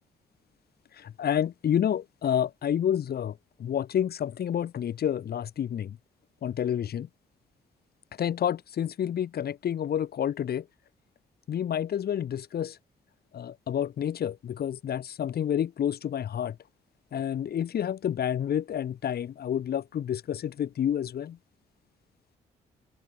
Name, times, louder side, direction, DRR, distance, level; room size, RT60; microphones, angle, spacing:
voice 1, 1.0-6.0 6.4-7.1 8.2-10.7 11.5-12.8 13.3-16.6 17.1-21.4, left 9 dB, 65° left, 6.4 m, -29 dB
hypercardioid pair, 45°, 17 cm